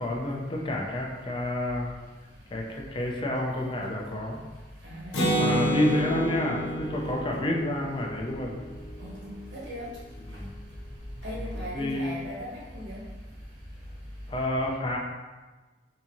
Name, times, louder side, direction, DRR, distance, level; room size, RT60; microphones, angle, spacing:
voice 1, 0.0-1.9 2.5-4.4 5.4-8.6 10.3-10.5 11.4-12.1 14.3-15.0, left 1 dB, 25° left, -1 dB, 0.4 m, -30 dB
voice 2, 4.8-6.2 9.0-9.9 11.2-13.0, equal, 85° right, -6 dB, 1.4 m, -38 dB
Acoustic guitar, 5.1-8.8, equal, 75° left, 0.8 m, -28 dB
3.7 x 2.7 x 2.9 m, 1.3 s
head